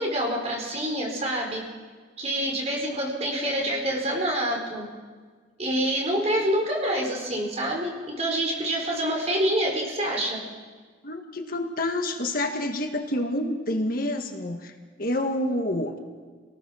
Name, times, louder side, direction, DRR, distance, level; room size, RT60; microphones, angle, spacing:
voice 1, 0.0-1.6 2.2-4.9 5.6-10.4, right 1 dB, 35° right, -1 dB, 4.6 m, -26 dB
voice 2, 11.0-14.7 15.0-16.0, left 1 dB, 50° left, 4 dB, 1.7 m, -28 dB
28.0 x 18.5 x 6.4 m, 1.5 s
head